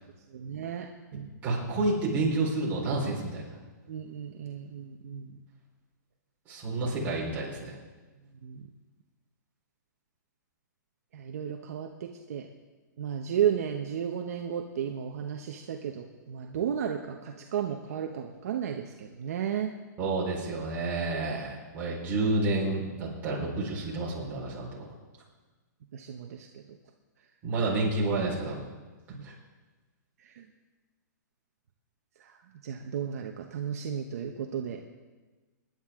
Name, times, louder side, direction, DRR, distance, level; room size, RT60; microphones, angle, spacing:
voice 1, 0.3-1.3 3.9-5.3 8.4-8.6 11.1-12.5 13.0-19.7 25.9-26.6 29.1-29.2 30.2-30.5 32.2-32.4 32.6-34.8, right 9 dB, 50° right, 3 dB, 1.0 m, -33 dB
voice 2, 1.4-3.5 6.5-7.8 20.0-24.9 27.4-28.6 29.2-29.3, right 2 dB, 15° right, -5 dB, 4.3 m, -29 dB
25.5 x 10.5 x 3.7 m, 1.3 s
hypercardioid pair, 170°, 10 cm